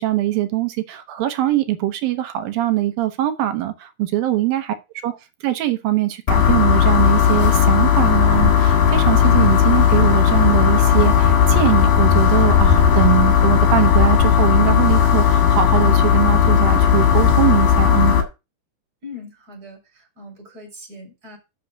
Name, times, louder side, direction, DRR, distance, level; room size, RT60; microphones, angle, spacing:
voice 1, 0.0-4.8 5.0-5.1 5.4-18.2, right 14 dB, 75° right, 2.8 m, -22 dB
sound 1, 6.3-18.2, left 8 dB, 70° left, 3.3 m, -15 dB
voice 2, 19.0-21.4, left 2 dB, 25° right, 4.8 m, -40 dB
6.8 x 6.3 x 6.9 m
omnidirectional pair, 4.3 m